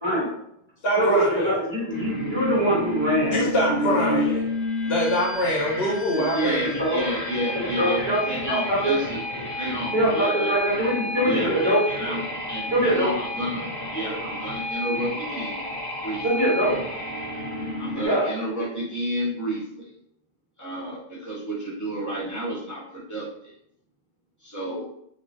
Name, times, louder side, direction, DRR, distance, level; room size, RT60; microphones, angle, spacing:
voice 1, 0.0-0.3 1.0-4.3 6.1-6.2 6.8-7.1 7.5-8.9 9.9-12.1 12.7-13.1 16.2-16.8 17.9-18.3, equal, 25° right, -8 dB, 0.9 m, -23 dB
voice 2, 0.8-1.5 3.3-4.5 4.8-6.8, equal, 70° left, -4 dB, 1.0 m, -24 dB
sound 1, 1.9-18.1, left 1 dB, 90° left, 1.1 m, -31 dB
voice 3, 6.3-9.2 9.5-10.6 11.2-13.6 13.9-15.7 16.0-16.2 17.8-19.9 20.6-23.5 24.4-24.8, right 1 dB, 15° left, -7 dB, 1.1 m, -31 dB
3.1 x 2.4 x 2.5 m, 0.74 s
omnidirectional pair, 1.1 m